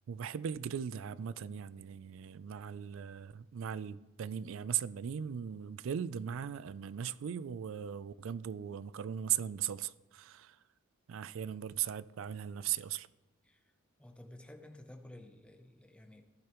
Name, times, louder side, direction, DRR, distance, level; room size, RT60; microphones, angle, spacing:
voice 1, 0.1-10.6 11.1-13.1, right 9 dB, 65° right, 0.3 m, -38 dB
voice 2, 14.0-16.2, left 1 dB, 5° left, 0.6 m, -53 dB
15.5 x 6.4 x 3.0 m
head